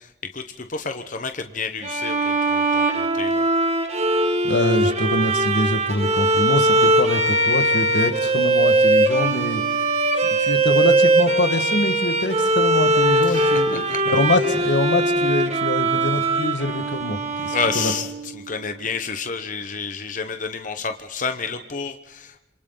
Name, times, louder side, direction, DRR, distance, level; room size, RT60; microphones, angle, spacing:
voice 1, 0.0-3.5 13.3-14.0 17.5-22.4, left 5 dB, 45° left, 8 dB, 1.1 m, -30 dB
Bowed string instrument, 1.8-18.4, right 2 dB, 40° right, 1.8 m, -20 dB
voice 2, 4.4-9.7 10.1-17.9, left 2 dB, 85° left, 9 dB, 1.7 m, -24 dB
27.5 x 27.0 x 4.0 m, 1.0 s
head